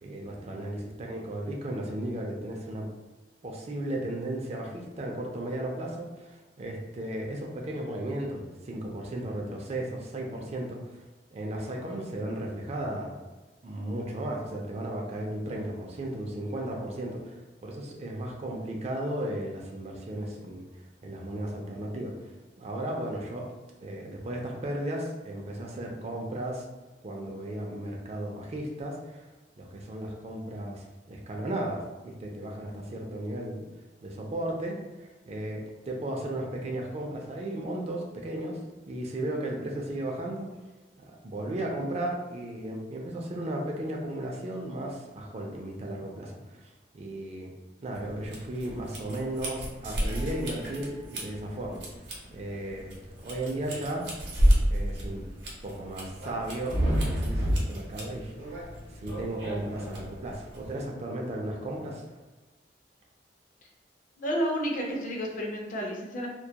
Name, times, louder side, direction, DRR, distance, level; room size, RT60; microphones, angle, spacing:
voice 1, 0.0-2.9 3.4-11.0 11.3-13.2 13.6-20.6 21.0-22.3 22.6-23.5 23.8-26.6 27.0-29.3 29.6-33.6 34.0-38.6 38.9-40.5 41.2-47.5 47.8-51.8 52.3-52.9 53.2-54.1 54.7-55.2 55.6-58.7 58.9-62.0, right 1 dB, 40° right, 0 dB, 0.4 m, -35 dB
sound 1, 47.9-60.8, equal, 75° right, 0.7 m, -31 dB
voice 2, 64.2-66.3, equal, 50° left, -1 dB, 0.5 m, -31 dB
2.2 x 2.1 x 2.7 m, 1.2 s
head